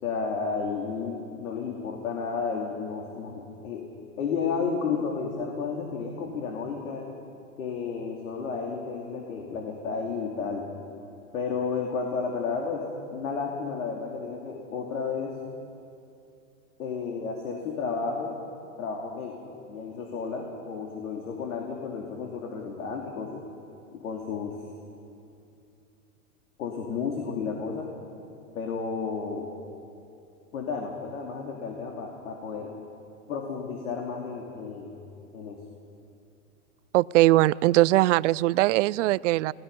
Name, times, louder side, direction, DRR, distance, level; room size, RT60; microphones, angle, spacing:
voice 1, 0.0-3.9 4.2-7.1 7.6-10.7 11.3-12.8 13.1-15.3 16.8-18.3 18.8-23.4 23.9-24.5 26.6-27.9 28.5-29.5 30.5-32.7 33.3-35.0 35.3-35.6, left 5 dB, 75° left, 1 dB, 2.8 m, -32 dB
voice 2, 36.9-39.5, right 17 dB, 60° right, 21 dB, 0.5 m, -21 dB
28.5 x 18.0 x 5.4 m, 2.6 s
supercardioid pair, 140°, 41 cm